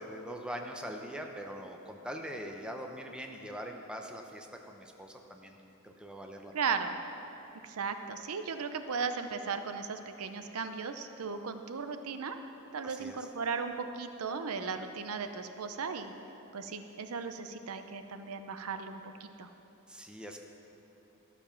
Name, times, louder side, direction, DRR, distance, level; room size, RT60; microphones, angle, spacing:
voice 1, 0.0-5.6 5.8-6.5 12.8-13.2 19.9-20.4, equal, 5° right, 3 dB, 0.6 m, -42 dB
voice 2, 6.5-7.0 7.6-12.4 12.7-16.1 16.5-19.5, right 5 dB, 75° right, 8 dB, 0.6 m, -36 dB
13.0 x 7.0 x 5.8 m, 3.0 s
head